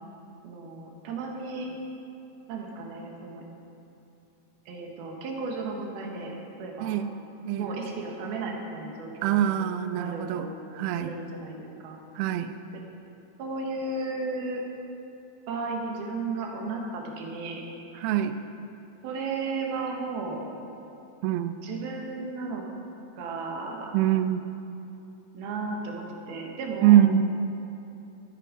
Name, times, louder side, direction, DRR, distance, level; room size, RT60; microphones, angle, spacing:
voice 1, 0.4-1.7 2.5-3.4 4.7-6.9 7.6-9.5 9.9-10.5 10.9-12.0 12.7-12.8 13.4-14.6 15.5-17.7 19.0-20.5 21.6-22.6 23.2-24.0 25.3-27.0, right 3 dB, 70° right, 0 dB, 3.2 m, -34 dB
voice 2, 6.8-7.1 7.5-7.7 9.2-11.2 12.2-12.6 18.0-18.4 21.2-21.6 23.9-24.5 26.8-27.4, right 11 dB, 85° right, 10 dB, 2.2 m, -24 dB
20.0 x 9.0 x 5.1 m, 2.8 s
omnidirectional pair, 5.0 m